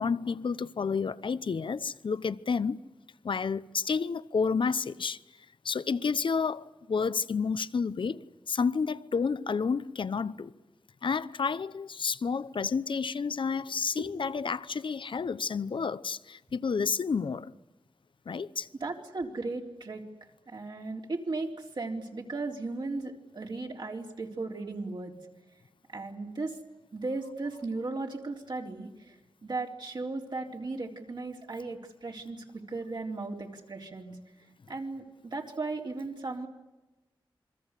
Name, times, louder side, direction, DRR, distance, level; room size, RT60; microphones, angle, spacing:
voice 1, 0.0-2.8 3.2-5.2 5.6-10.5 11.0-17.5 18.3-18.7, left 5 dB, 75° left, 0.9 m, -30 dB
voice 2, 18.8-20.0 20.5-25.1 25.9-26.6 26.9-34.2 34.7-36.5, right 3 dB, 60° right, 3.8 m, -36 dB
28.5 x 22.5 x 8.3 m
wide cardioid pair, 105°, 9 cm